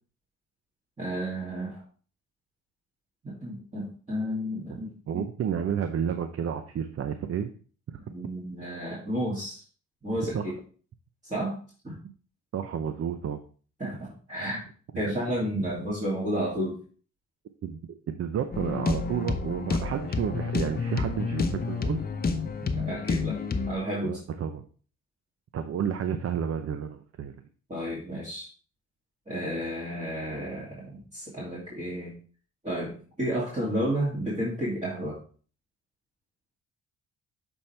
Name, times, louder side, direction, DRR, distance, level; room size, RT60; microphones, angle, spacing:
voice 1, 1.0-1.8 3.2-5.2 8.1-9.6 10.0-10.5 11.2-11.6 11.8-12.0 13.8-14.6 14.9-16.8 22.6-23.4 23.6-24.2 27.7-28.5 29.3-32.2 32.6-35.2, equal, 25° right, -6 dB, 2.4 m, -32 dB
voice 2, 5.1-7.5 7.9-8.0 10.3-10.4 12.0-12.1 12.5-13.4 17.6-17.8 18.1-22.0 24.0-24.6 25.5-27.3, right 8 dB, 50° right, 8 dB, 0.6 m, -31 dB
sound 1, 18.5-23.7, left 4 dB, 30° left, 0.8 m, -29 dB
7.1 x 4.4 x 3.3 m, 0.41 s
cardioid pair, 90°, 30 cm